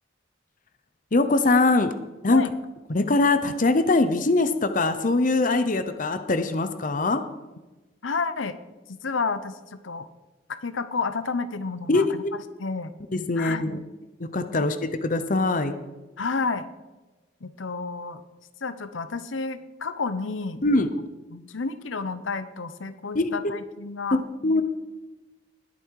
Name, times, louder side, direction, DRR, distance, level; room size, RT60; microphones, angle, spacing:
voice 1, 1.1-1.9 2.2-2.4 2.9-7.2 11.9-12.3 13.1-13.8 14.2-15.7 20.6-20.9 23.1-23.3 24.1-24.6, left 2 dB, 45° left, 10 dB, 0.8 m, -22 dB
voice 2, 8.0-8.6 8.9-9.6 9.8-10.1 10.5-12.9 13.4-13.8 16.2-16.7 17.4-18.2 18.6-20.6 21.3-24.2 24.5-24.6, left 4 dB, 80° left, 12 dB, 0.8 m, -30 dB
20.0 x 8.6 x 4.7 m, 1.1 s
head